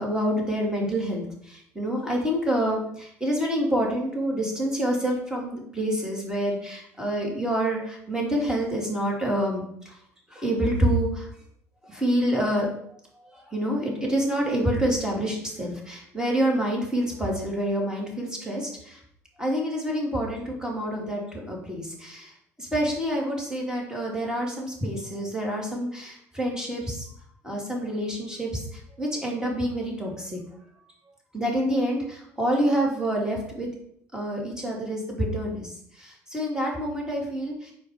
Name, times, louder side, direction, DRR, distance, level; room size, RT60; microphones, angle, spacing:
voice 1, 0.0-9.9 10.3-11.3 11.8-12.7 13.3-19.0 19.4-22.3 22.6-27.0 27.4-30.4 31.3-33.7 34.1-35.7 36.0-37.7, equal, 10° right, -2 dB, 2.5 m, -27 dB
5.0 x 4.4 x 4.8 m, 0.69 s
hypercardioid pair, 65°, 8 cm